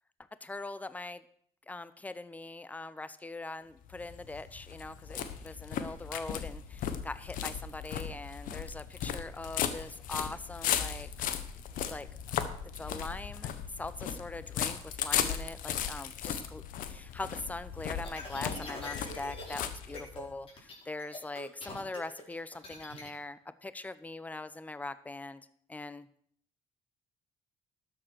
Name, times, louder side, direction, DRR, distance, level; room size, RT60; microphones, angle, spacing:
voice 1, 0.4-1.2 1.7-11.1 11.9-12.3 12.8-26.1, left 2 dB, 10° left, 15 dB, 0.7 m, -42 dB
sound 1, 3.8-20.3, left 9 dB, 75° left, 1.2 m, -36 dB
sound 2, 18.0-19.6 19.9-20.2 20.5-23.1, left 2 dB, 40° left, 5.1 m, -43 dB
12.5 x 7.7 x 6.4 m, 0.63 s
cardioid pair, 95°, 14 cm